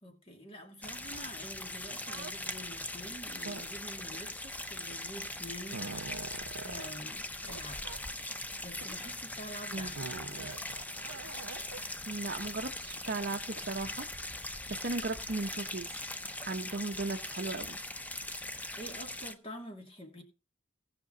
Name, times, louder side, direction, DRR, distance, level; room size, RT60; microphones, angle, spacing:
voice 1, 0.0-6.2 6.6-7.8 8.6-10.5 18.8-20.2, equal, 30° left, 2.4 m, -47 dB
sound 1, 0.8-19.3, left 2 dB, 10° left, 0.6 m, -41 dB
sound 2, 2.0-2.3 3.4-4.0 4.9-5.0 5.4-6.9 7.4-7.6 7.8-8.0 8.7-9.1 10.0-11.8, right 4 dB, 85° right, 0.8 m, -44 dB
voice 2, 12.1-14.1 14.7-15.9 16.5-17.8, right 3 dB, 50° right, 0.8 m, -36 dB
17.5 x 6.1 x 3.9 m
head